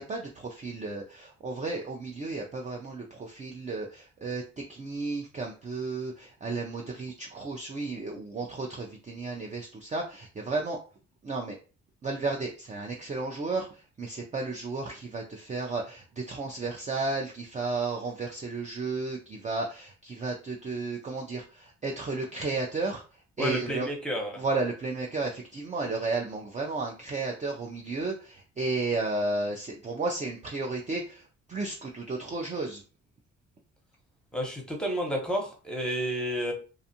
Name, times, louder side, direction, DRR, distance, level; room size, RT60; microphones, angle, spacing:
voice 1, 0.0-10.8 11.2-11.6 12.0-23.0 23.4-23.9 24.4-32.8, right 3 dB, 25° right, 1 dB, 0.4 m, -33 dB
voice 2, 23.4-24.4 34.3-36.5, equal, 5° left, 2 dB, 0.9 m, -31 dB
2.5 x 2.4 x 2.7 m, 0.35 s
cardioid pair, 90°, 30 cm